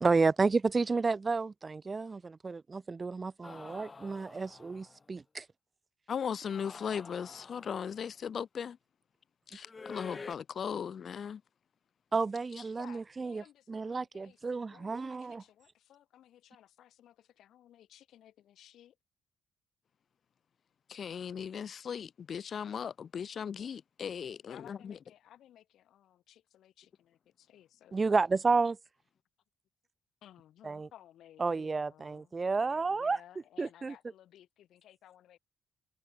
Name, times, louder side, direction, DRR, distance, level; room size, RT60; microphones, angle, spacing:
voice 1, 0.0-5.5 12.1-13.4 13.7-15.4 27.9-28.8 30.6-30.9 31.4-33.2 33.6-33.9, right 4 dB, 30° right, 0.4 m, -31 dB
sound 1, 3.4-5.0 6.4-8.1 9.7-10.4, left 4 dB, 30° left, 1.3 m, -48 dB
voice 2, 6.1-8.8 9.5-11.4 20.9-24.9, left 7 dB, 50° left, 0.8 m, -38 dB
voice 3, 12.8-19.0 24.4-28.3 30.2-35.4, left 11 dB, 75° left, 5.1 m, -58 dB
cardioid pair, 90°, 0 cm